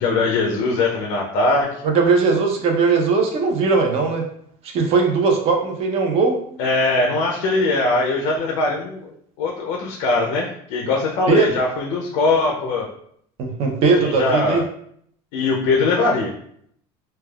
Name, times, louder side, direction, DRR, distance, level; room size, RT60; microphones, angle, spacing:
voice 1, 0.0-1.8 6.6-9.1 9.4-12.9 14.0-14.6 15.3-16.3, left 3 dB, 75° left, 0 dB, 0.4 m, -21 dB
voice 2, 1.8-4.3 4.6-6.4 11.3-11.5 13.4-14.6, right 4 dB, 55° right, 3 dB, 0.6 m, -19 dB
3.2 x 2.2 x 2.2 m, 0.68 s
cardioid pair, 145°, 12 cm